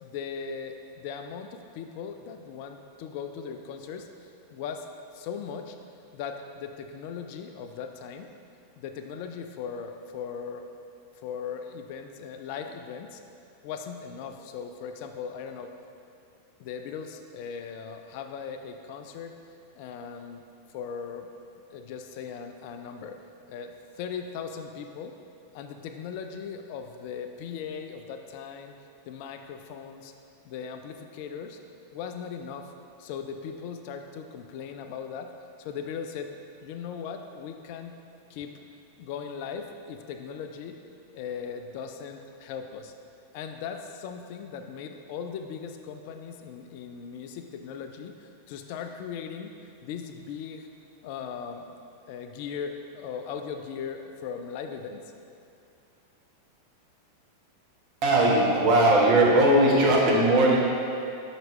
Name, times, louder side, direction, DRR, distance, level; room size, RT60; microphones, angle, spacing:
voice 1, 0.0-4.1 4.5-4.9 5.1-5.8 6.1-8.3 8.8-10.7 11.2-13.2 13.6-15.7 16.6-19.4 19.7-20.4 20.7-21.3 21.7-23.2 23.5-25.1 25.5-28.7 29.1-30.1 30.4-31.6 31.9-32.7 33.0-35.3 35.6-37.9 38.3-38.5 39.0-40.8 41.1-42.9 43.3-49.5 49.8-50.7 51.0-51.8 52.1-55.0, left 6 dB, 45° left, 6 dB, 0.3 m, -38 dB
voice 2, 58.0-60.6, right 1 dB, 40° right, -3 dB, 1.1 m, -19 dB
5.8 x 5.2 x 3.1 m, 2.5 s
figure-of-eight pair, 90°, 0 cm